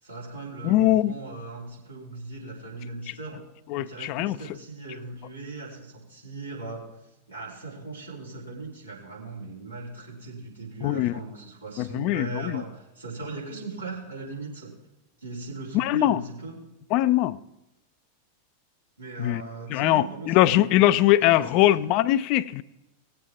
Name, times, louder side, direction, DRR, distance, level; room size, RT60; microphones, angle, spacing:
voice 1, 0.0-3.5 3.7-6.9 7.3-14.8 15.2-16.6 19.0-21.8, right 3 dB, 85° right, 3.3 m, -39 dB
voice 2, 0.6-1.1 3.7-4.4 10.8-11.1 11.8-12.6 15.7-16.2 16.9-17.4 19.2-19.4 19.7-22.6, left 14 dB, 45° left, 0.4 m, -21 dB
18.5 x 8.0 x 3.5 m
figure-of-eight pair, 90°, 0 cm